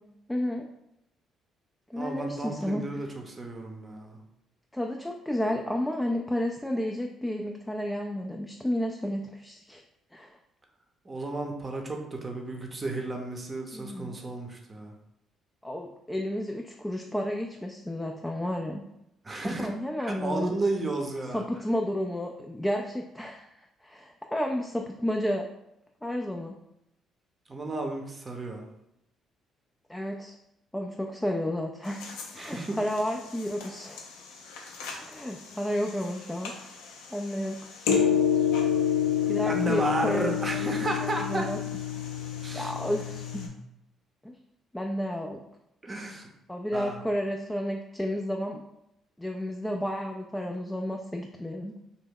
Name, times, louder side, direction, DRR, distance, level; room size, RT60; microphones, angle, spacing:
voice 1, 0.3-0.7 1.9-2.8 4.7-9.8 10.1-10.4 13.7-14.1 15.6-18.8 19.4-20.5 21.3-25.4 26.0-26.6 29.9-30.4 30.7-32.0 32.3-34.0 35.0-36.5 37.1-37.6 39.3-40.8 41.1-41.6 42.5-43.5 44.2-44.3 44.7-45.4 46.5-48.6 49.2-51.7, equal, 10° left, 1 dB, 0.4 m, -31 dB
voice 2, 2.0-4.2 11.0-14.9 19.2-19.7 20.0-21.5 27.5-28.6 32.4-32.8 39.5-41.5 42.4-42.7 45.8-46.3 46.7-47.0, right 2 dB, 30° right, 2 dB, 0.7 m, -33 dB
sound 1, 31.9-43.5, left 8 dB, 75° left, 0.4 m, -30 dB
2.8 x 2.1 x 3.6 m, 0.83 s
hypercardioid pair, 50°, 0 cm